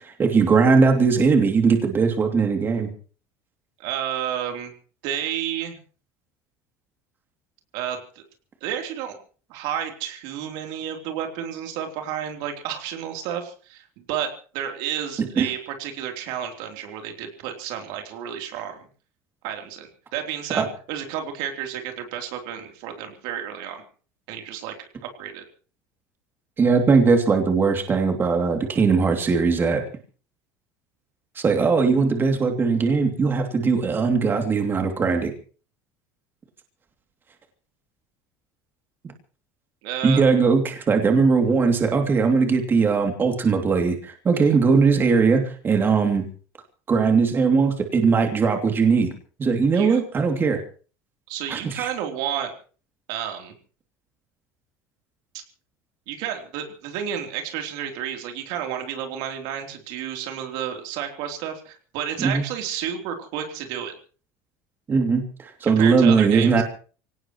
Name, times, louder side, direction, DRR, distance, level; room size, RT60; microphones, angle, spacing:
voice 1, 0.0-2.9 15.4-15.5 20.5-20.6 26.6-29.8 31.4-35.3 40.0-46.2 46.9-49.1 49.4-50.6 51.5-51.9 62.2-62.4 64.9-66.6, right 5 dB, 25° right, 4 dB, 2.8 m, -20 dB
voice 2, 3.8-4.7 5.0-5.8 7.7-8.2 8.6-9.2 9.5-18.9 19.4-23.8 24.3-24.7 25.1-25.4 39.8-40.3 49.7-50.0 51.3-52.5 53.1-53.5 55.3-55.4 56.1-63.9 65.6-66.6, right 9 dB, 75° right, 4 dB, 3.5 m, -31 dB
24.5 x 18.0 x 3.1 m, 0.39 s
supercardioid pair, 125°, 8 cm